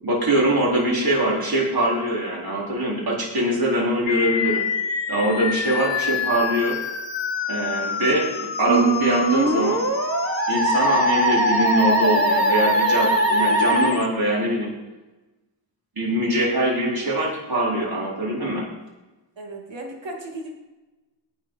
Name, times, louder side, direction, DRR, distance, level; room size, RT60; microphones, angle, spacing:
voice 1, 0.0-4.6 5.1-6.8 7.5-9.8 10.5-14.7 16.0-18.7, right 1 dB, 50° right, -3 dB, 4.6 m, -23 dB
sound 1, 4.1-14.1, left 7 dB, 70° left, 1.0 m, -28 dB
Musical instrument, 8.7-13.9, right 1 dB, 30° right, 1.4 m, -21 dB
voice 2, 19.4-20.5, right 1 dB, 70° right, 0 dB, 2.8 m, -35 dB
18.5 x 6.6 x 5.8 m, 1.1 s
wide cardioid pair, 140°, 46 cm